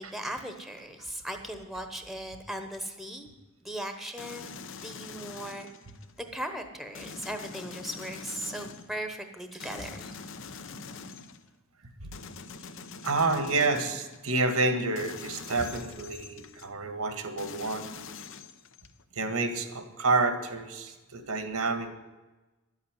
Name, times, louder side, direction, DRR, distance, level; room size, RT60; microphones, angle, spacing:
voice 1, 0.0-3.3 3.6-4.5 4.8-5.7 6.3-10.1, right 1 dB, ahead, 6 dB, 1.0 m, -38 dB
sound 1, 4.2-6.2 6.9-9.0 9.6-11.5 12.1-14.3 15.0-16.7 17.4-19.0, left 5 dB, 60° left, 0.8 m, -44 dB
voice 2, 13.0-17.9 19.1-21.9, right 3 dB, 80° right, 8 dB, 1.6 m, -29 dB
11.5 x 8.2 x 9.6 m, 1.2 s
head